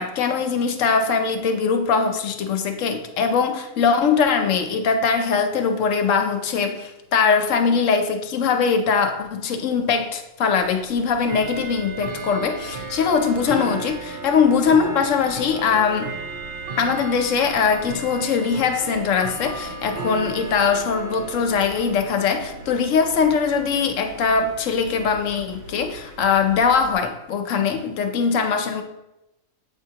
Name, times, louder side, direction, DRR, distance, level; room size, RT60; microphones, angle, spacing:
voice 1, 0.0-16.1 16.8-28.8, left 6 dB, 65° left, 6 dB, 0.9 m, -21 dB
Bell / Tick-tock, 10.6-26.9, right 4 dB, 60° right, 0.6 m, -35 dB
7.7 x 4.3 x 2.8 m, 0.94 s
omnidirectional pair, 1.5 m